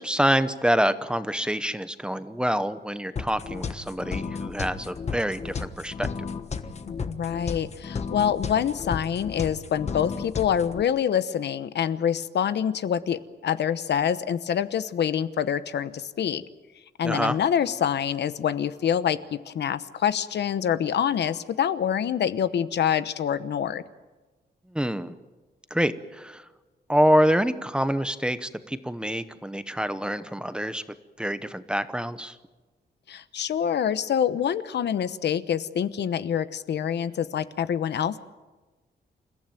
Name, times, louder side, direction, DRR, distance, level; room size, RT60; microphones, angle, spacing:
voice 1, 0.0-6.1 17.0-17.4 24.7-25.1 25.7-26.4 26.9-30.8 31.2-32.4, equal, 5° right, 12 dB, 0.9 m, -26 dB
sound 1, 3.2-10.8, left 5 dB, 40° left, 1.3 m, -33 dB
voice 2, 6.9-16.4 17.0-23.8 33.1-38.2, left 8 dB, 75° left, 13 dB, 1.0 m, -26 dB
28.5 x 15.0 x 9.1 m, 1.2 s
wide cardioid pair, 155°, 18 cm